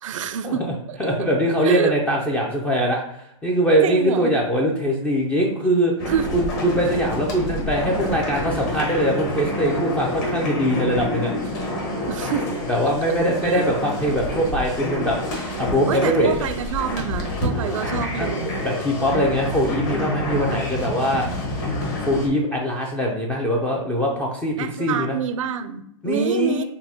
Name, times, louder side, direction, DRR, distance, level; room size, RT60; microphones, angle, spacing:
voice 1, 0.0-1.3 1.6-1.9 3.8-4.3 6.1-6.3 12.1-12.5 13.4-13.6 15.9-18.5 24.6-26.6, right 8 dB, 70° right, 11 dB, 0.4 m, -27 dB
voice 2, 1.0-11.7 12.7-15.2 15.6-16.3 17.5-17.9 18.2-18.3 18.6-21.3 21.6-21.7 22.1-25.2 26.0-26.6, equal, 5° left, -1 dB, 0.3 m, -22 dB
sound 1, 6.0-22.3, left 1 dB, 40° left, 1.2 m, -28 dB
6.0 x 2.1 x 2.7 m, 0.73 s
hypercardioid pair, 145°, 17 cm